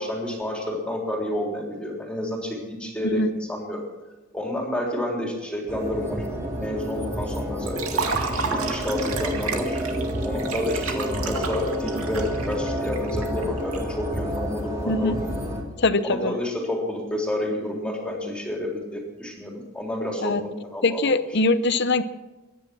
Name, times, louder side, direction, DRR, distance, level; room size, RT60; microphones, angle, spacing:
voice 1, 0.0-3.8 4.3-8.0 8.5-15.4 16.0-21.1, left 1 dB, 5° left, -1 dB, 3.6 m, -30 dB
sound 1, 5.7-15.6, equal, 15° right, 2.8 m, -30 dB
Liquid, 7.7-13.8, right 5 dB, 85° right, 2.2 m, -31 dB
voice 2, 14.9-15.2 15.8-16.3 20.2-20.4 20.8-22.0, left 2 dB, 50° left, 12 dB, 0.8 m, -22 dB
23.0 x 10.5 x 6.2 m, 1.1 s
head